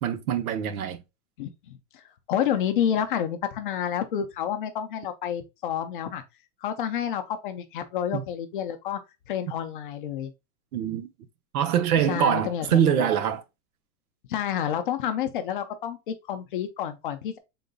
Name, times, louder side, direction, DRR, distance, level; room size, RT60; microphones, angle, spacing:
voice 1, 0.0-1.0 8.1-8.2 10.7-11.1 11.5-13.4, right 9 dB, 75° right, 0.8 m, -24 dB
voice 2, 1.4-2.0 2.3-6.2 6.6-9.0 9.3-10.3 12.1-13.1 14.3-17.4, left 9 dB, 40° left, 0.4 m, -29 dB
5.1 x 3.8 x 2.2 m
supercardioid pair, 175°, 44 cm